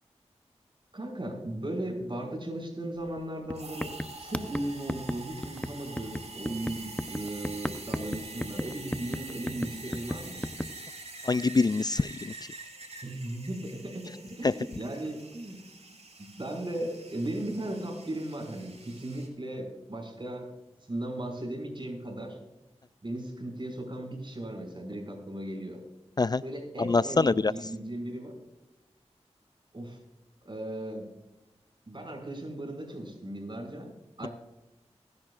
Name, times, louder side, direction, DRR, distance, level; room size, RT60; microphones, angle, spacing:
voice 1, 0.9-3.9 4.2-10.4 13.0-15.6 15.9-20.5 20.9-22.4 23.0-25.8 26.4-28.4 29.7-30.0 30.4-31.1 31.9-33.9 34.2-34.3, right 1 dB, 45° right, 2 dB, 5.5 m, -37 dB
sound 1, 3.1-3.2 3.5-10.7, left 1 dB, 10° left, 0.7 m, -35 dB
sound 2, 3.5-19.3, right 3 dB, 65° right, 4.8 m, -45 dB
voice 2, 11.3-12.3 14.4-14.5 26.2-26.4 26.8-27.5, left 3 dB, 35° left, 16 dB, 0.3 m, -24 dB
23.5 x 11.0 x 2.4 m, 1.0 s
cardioid pair, 40°, 12 cm